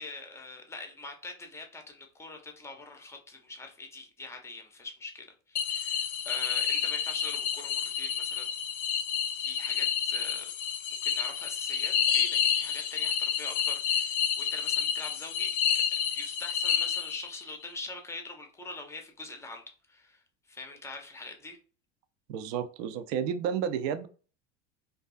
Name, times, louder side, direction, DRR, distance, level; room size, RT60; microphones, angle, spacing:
voice 1, 0.0-8.5 9.4-10.5 10.9-19.6 19.9-20.2 20.5-21.6, left 3 dB, 10° left, 3 dB, 0.5 m, -43 dB
sound 1, 5.5-17.5, left 8 dB, 70° left, 0.5 m, -29 dB
voice 2, 22.3-24.1, right 8 dB, 55° right, 10 dB, 0.5 m, -31 dB
2.5 x 2.3 x 2.4 m, 0.38 s
hypercardioid pair, 80°, 35 cm